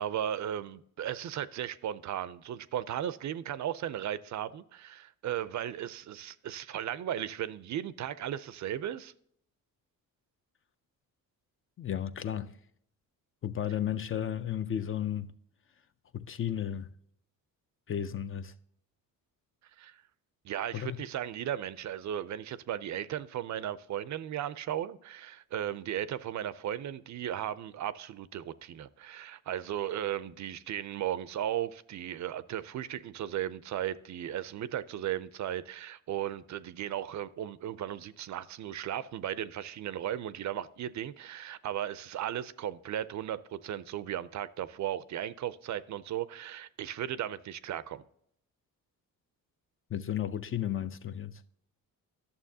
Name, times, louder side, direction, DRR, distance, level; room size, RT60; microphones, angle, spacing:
voice 1, 0.0-9.1 19.8-20.0 20.4-48.0, right 11 dB, 55° right, 0.5 m, -36 dB
voice 2, 11.8-12.5 13.4-15.3 16.1-16.9 17.9-18.5 20.7-21.0 49.9-51.4, left 10 dB, 40° left, 0.4 m, -33 dB
11.5 x 6.9 x 2.7 m
cardioid pair, 115°, 35 cm